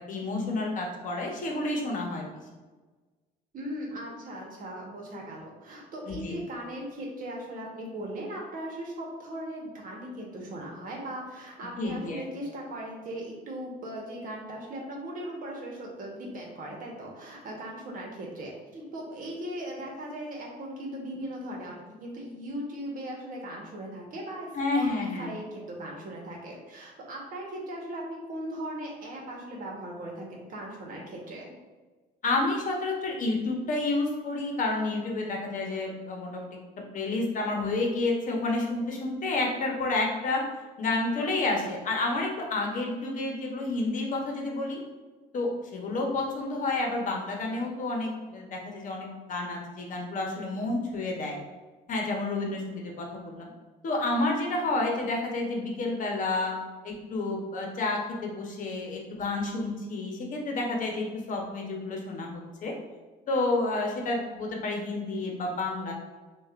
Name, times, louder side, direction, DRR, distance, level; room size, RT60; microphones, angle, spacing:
voice 1, 0.0-2.3 6.1-6.3 11.6-12.2 24.5-25.3 32.2-36.5 36.8-40.4 40.8-44.8 45.3-51.4 51.9-53.5 53.8-56.5 56.8-62.7 63.3-65.9, left 2 dB, 50° left, 0 dB, 0.9 m, -30 dB
voice 2, 3.5-31.5, right 1 dB, 55° right, -1 dB, 1.2 m, -38 dB
6.3 x 2.4 x 2.5 m, 1.3 s
cardioid pair, 110°, 17 cm